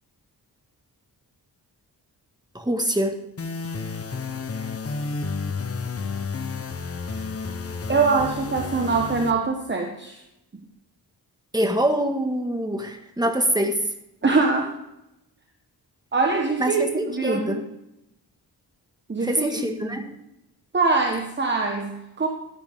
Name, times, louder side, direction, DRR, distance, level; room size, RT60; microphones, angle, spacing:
voice 1, 2.5-3.2 11.5-13.8 16.6-17.6 19.2-20.2, right 1 dB, 10° right, 4 dB, 1.5 m, -24 dB
sound 1, 3.4-9.3, left 4 dB, 35° left, 0.9 m, -31 dB
voice 2, 7.9-10.2 14.2-14.8 16.1-17.6 19.1-19.9 20.7-22.3, right 4 dB, 25° right, 2 dB, 1.2 m, -23 dB
12.0 x 10.0 x 3.6 m, 0.88 s
wide cardioid pair, 95°, 40 cm